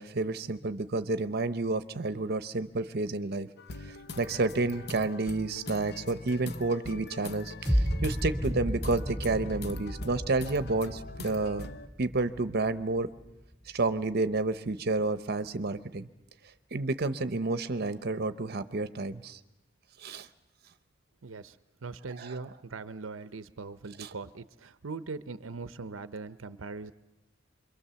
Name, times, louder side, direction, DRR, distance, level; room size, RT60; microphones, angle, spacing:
voice 1, 0.0-3.5 4.2-11.7 12.0-13.1 13.7-16.1 16.7-19.4 20.0-20.3 22.2-22.4 24.0-24.1, right 3 dB, 55° right, 11 dB, 0.8 m, -30 dB
sound 1, 3.6-11.9, left 3 dB, 55° left, 0.9 m, -43 dB
sound 2, 7.7-13.7, equal, ahead, 2.9 m, -33 dB
voice 2, 21.2-21.6 21.8-26.9, right 4 dB, 85° right, 13 dB, 0.7 m, -41 dB
25.5 x 23.0 x 7.0 m, 0.98 s
head